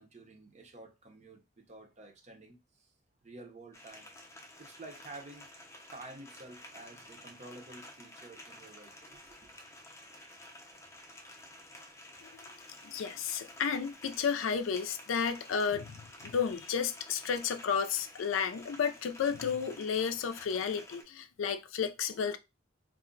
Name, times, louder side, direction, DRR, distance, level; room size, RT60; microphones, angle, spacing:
voice 1, 0.0-2.9 3.2-4.1 4.6-5.5 5.9-9.5, right 2 dB, 35° right, 0.7 m, -50 dB
sound 1, 3.7-21.0, left 1 dB, 15° left, 0.5 m, -52 dB
voice 2, 12.8-22.4, left 6 dB, 85° left, 0.4 m, -32 dB
2.4 x 2.1 x 3.8 m
head